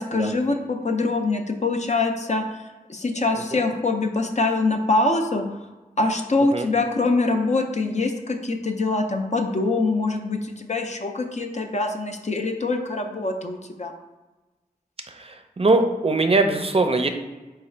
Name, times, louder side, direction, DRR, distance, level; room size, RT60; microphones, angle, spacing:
voice 1, 0.0-2.4 2.9-5.4 6.0-13.9, left 3 dB, 50° left, 4 dB, 0.5 m, -24 dB
voice 2, 15.2-17.1, right 2 dB, 40° right, 6 dB, 0.5 m, -21 dB
3.9 x 2.4 x 4.4 m, 1.2 s
wide cardioid pair, 45°, 15 cm